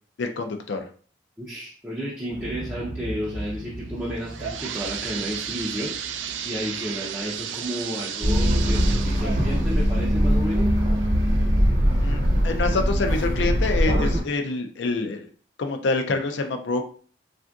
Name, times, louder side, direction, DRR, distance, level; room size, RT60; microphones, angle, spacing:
voice 1, 0.2-0.9 12.0-15.3 15.6-16.8, left 3 dB, 65° left, 5 dB, 0.4 m, -26 dB
voice 2, 1.4-6.0 6.4-10.7 12.4-12.8, equal, 5° right, -8 dB, 0.4 m, -32 dB
Explosion, 2.3-8.3 8.6-8.7, equal, 80° left, 1.1 m, -39 dB
sound 1, 4.0-11.6 12.1-12.2 12.9-13.0 13.4-13.5, right 8 dB, 75° right, 0.3 m, -34 dB
sound 2, 8.2-14.2, equal, 50° right, 0.9 m, -21 dB
3.5 x 2.5 x 2.3 m, 0.43 s
head